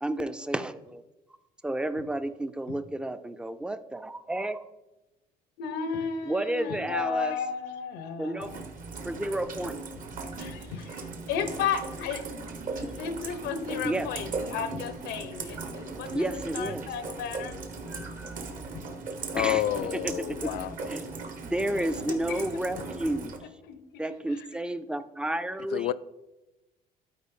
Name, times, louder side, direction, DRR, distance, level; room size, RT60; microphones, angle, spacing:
voice 1, 0.0-1.0 1.6-4.6 6.3-7.4 8.2-8.5 9.1-9.8 12.8-12.9 13.8-14.1 15.9-16.9 17.9-18.4 19.4-19.6 19.9-20.5 20.8-21.1 21.4-23.4 24.0-25.9, right 1 dB, 5° right, 0.4 m, -31 dB
voice 2, 5.6-8.6 10.4-12.3 12.8-17.6 18.0-18.1 18.7-18.9 20.4-20.7 22.1-22.9 23.7-23.8 24.3-24.4, left 6 dB, 90° left, 0.9 m, -34 dB
Rain, 8.4-23.4, right 4 dB, 50° right, 1.1 m, -38 dB
voice 3, 19.3-20.7 25.7-25.9, left 14 dB, 70° left, 0.4 m, -29 dB
12.0 x 4.3 x 3.8 m
cardioid pair, 110°, 17 cm